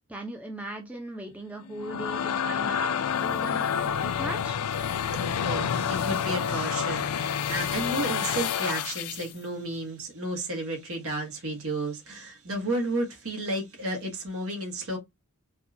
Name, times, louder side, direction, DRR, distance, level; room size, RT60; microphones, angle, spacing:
voice 1, 0.1-4.6, right 1 dB, 5° right, 0.6 m, -38 dB
sound 1, 1.6-9.3, left 7 dB, 85° left, 0.4 m, -29 dB
voice 2, 5.1-15.0, right 1 dB, 70° right, 1.5 m, -32 dB
4.1 x 2.4 x 2.8 m
head